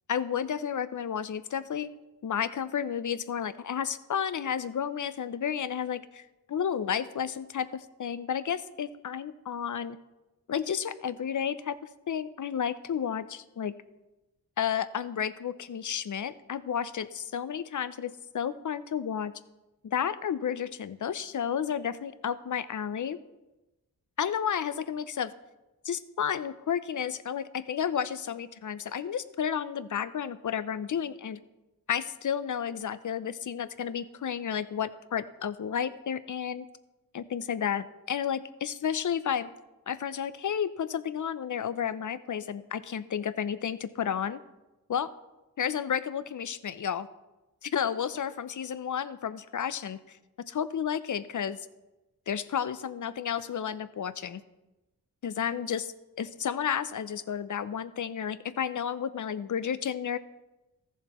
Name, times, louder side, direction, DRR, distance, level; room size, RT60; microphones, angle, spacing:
voice 1, 0.1-1.9 2.2-6.2 6.5-10.0 10.5-11.8 12.1-13.7 14.6-19.3 19.8-23.2 24.2-25.3 25.8-31.4 31.9-36.7 37.1-39.5 39.9-44.4 44.9-45.1 45.6-47.1 47.6-51.7 52.3-54.4 55.2-60.2, left 8 dB, 50° left, 14 dB, 0.6 m, -32 dB
14.0 x 7.2 x 3.0 m, 1.0 s
cardioid pair, 45°, 39 cm